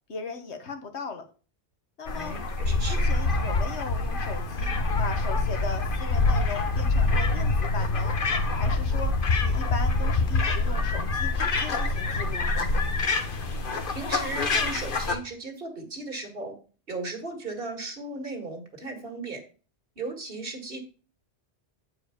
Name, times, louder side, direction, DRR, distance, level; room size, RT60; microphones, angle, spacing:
voice 1, 0.1-1.3 2.0-2.3 2.6-4.7 5.0-8.1 8.6-9.1 9.4-12.5, left 4 dB, 75° left, 6 dB, 1.4 m, -38 dB
sound 1, 2.1-15.1, left 3 dB, 55° left, 1.1 m, -25 dB
voice 2, 2.2-3.0 13.9-16.5 16.9-19.4 20.0-20.8, right 3 dB, 55° right, 4 dB, 2.0 m, -36 dB
8.7 x 4.8 x 4.9 m, 0.37 s
omnidirectional pair, 1.1 m